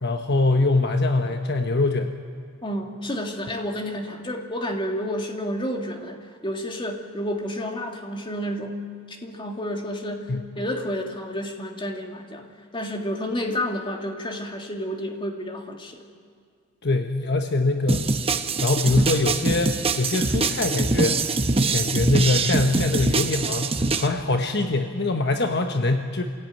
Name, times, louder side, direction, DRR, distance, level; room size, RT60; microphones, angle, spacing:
voice 1, 0.0-2.1 10.3-10.4 16.8-18.2 18.6-21.3 21.7-26.2, left 2 dB, 55° left, 5 dB, 1.1 m, -23 dB
voice 2, 2.6-12.5 12.7-16.0, equal, 25° left, 3 dB, 2.1 m, -30 dB
sound 1, 17.9-24.1, right 3 dB, 30° right, 0.9 m, -24 dB
26.0 x 16.5 x 9.2 m, 2.1 s
head